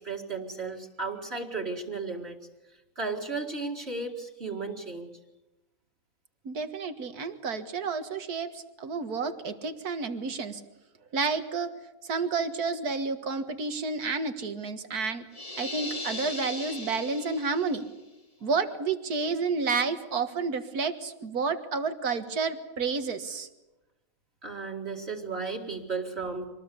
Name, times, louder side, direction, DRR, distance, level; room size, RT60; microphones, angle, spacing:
voice 1, 0.0-2.4 3.0-5.1 24.4-26.5, right 4 dB, 45° right, -1 dB, 2.2 m, -34 dB
voice 2, 6.5-10.6 11.1-11.7 12.0-15.3 15.6-17.9 18.4-23.5, right 4 dB, 85° right, 9 dB, 2.1 m, -30 dB
sound 1, 15.3-17.9, left 2 dB, 25° left, 1.5 m, -38 dB
25.5 x 19.5 x 8.3 m, 0.99 s
omnidirectional pair, 1.6 m